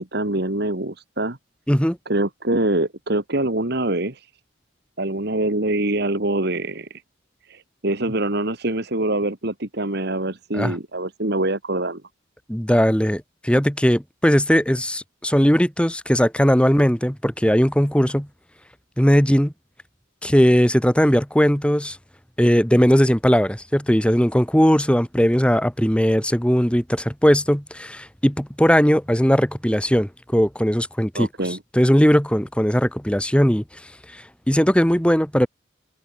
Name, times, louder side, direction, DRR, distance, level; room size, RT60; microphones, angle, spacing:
voice 1, 0.0-1.4 2.1-4.3 5.0-7.0 7.5-12.0 31.2-31.6, right 2 dB, 55° right, 2.2 m, -24 dB
voice 2, 12.5-18.3 19.0-19.5 20.2-22.0 22.4-31.3 31.7-33.6 34.1-35.5, equal, 5° left, 2.0 m, -18 dB
head